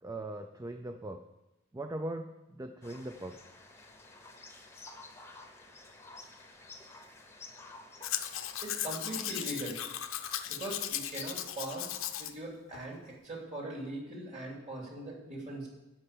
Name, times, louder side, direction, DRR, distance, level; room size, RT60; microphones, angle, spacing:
voice 1, 0.0-1.2 1.7-3.4, right 1 dB, 15° right, 6 dB, 0.4 m, -40 dB
sound 1, 2.8-11.3, left 3 dB, 10° left, 0.9 m, -52 dB
Domestic sounds home sounds, 8.0-12.3 12.7-12.8, left 11 dB, 60° left, 0.7 m, -37 dB
voice 2, 8.6-9.8 10.5-11.9 12.2-15.7, right 1 dB, 30° right, -2 dB, 3.0 m, -40 dB
12.5 x 5.5 x 8.4 m, 1.0 s
head